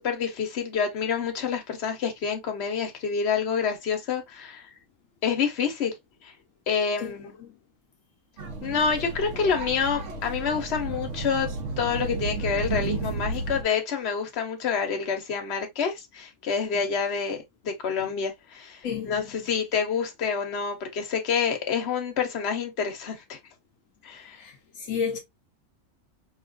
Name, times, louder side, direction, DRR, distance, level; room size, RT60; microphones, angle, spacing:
voice 1, 0.0-4.6 5.2-6.0 6.2-6.3 6.7-7.4 8.6-11.5 11.8-23.4 24.0-24.4, left 6 dB, 55° left, 1.2 m, -28 dB
voice 2, 7.0-7.5 16.7-16.8 18.0-18.1 18.8-19.2 24.3-25.2, left 7 dB, 75° left, 1.1 m, -33 dB
sound 1, 8.4-13.6, right 3 dB, 65° right, 1.2 m, -32 dB
5.1 x 2.5 x 2.3 m
omnidirectional pair, 1.4 m